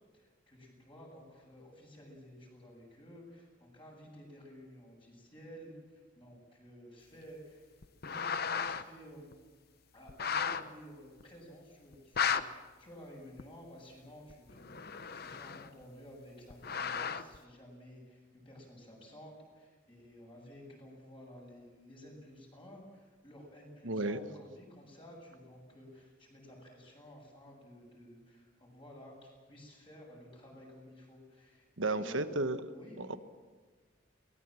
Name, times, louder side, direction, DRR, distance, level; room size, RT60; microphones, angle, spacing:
voice 1, 0.1-7.7 8.0-9.3 9.9-32.3 32.7-33.1, equal, 25° left, -1 dB, 7.5 m, -53 dB
sound 1, 7.8-8.8 9.3-9.4 10.1-10.6 11.2-11.3 11.9-12.4 13.4-13.5 14.3-15.8 16.5-17.4, left 6 dB, 50° left, 0.8 m, -34 dB
voice 2, 23.8-24.3 31.8-32.6 33.0-33.2, right 2 dB, 85° right, 9 dB, 1.2 m, -33 dB
23.0 x 19.5 x 7.7 m, 1.4 s
head